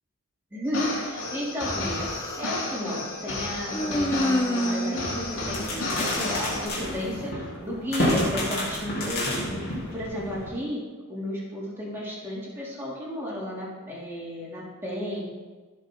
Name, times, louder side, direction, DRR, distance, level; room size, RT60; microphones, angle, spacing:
voice 1, 0.5-2.1 2.4-7.3 7.6-10.8 11.1-15.2, equal, 10° right, -6 dB, 3.0 m, -33 dB
sound 1, 0.7-6.7, left 2 dB, 65° left, 3.0 m, -32 dB
Human voice, 1.6-2.6 3.7-6.5, equal, 15° left, 0.5 m, -29 dB
sound 2, 5.3-10.5, left 1 dB, 45° left, 3.4 m, -30 dB
16.0 x 5.6 x 3.9 m, 1.4 s
head